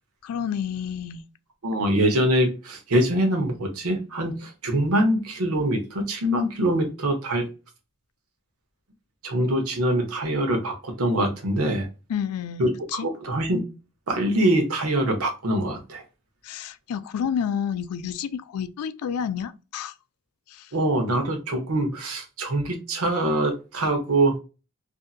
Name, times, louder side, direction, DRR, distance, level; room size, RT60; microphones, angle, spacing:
voice 1, 0.2-1.2 12.1-13.1 16.4-19.9 20.5-20.7, left 8 dB, 85° left, 0.3 m, -30 dB
voice 2, 1.6-7.5 9.2-11.9 12.6-13.6 14.1-16.0 20.7-24.4, right 1 dB, 80° right, 0.9 m, -24 dB
2.7 x 2.5 x 2.4 m
head